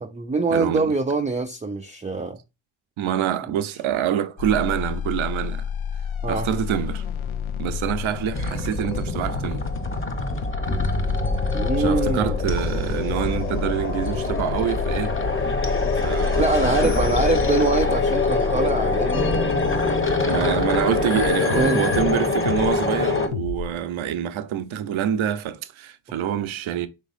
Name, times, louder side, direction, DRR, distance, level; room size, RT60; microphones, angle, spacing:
voice 1, 0.0-2.4 6.2-6.5 11.5-12.4 16.4-19.7 21.1-21.8, right 3 dB, 15° right, 0.4 m, -24 dB
voice 2, 0.5-0.9 3.0-5.7 6.3-7.0 7.6-9.7 11.8-15.2 15.9-17.0 20.3-26.9, right 10 dB, 70° right, 0.8 m, -26 dB
sound 1, 4.4-22.1 22.5-22.8 23.3-23.8, left 7 dB, 75° left, 0.7 m, -31 dB
sound 2, 8.3-23.3, left 3 dB, 25° left, 1.1 m, -24 dB
5.4 x 3.6 x 2.5 m
cardioid pair, 75°, 49 cm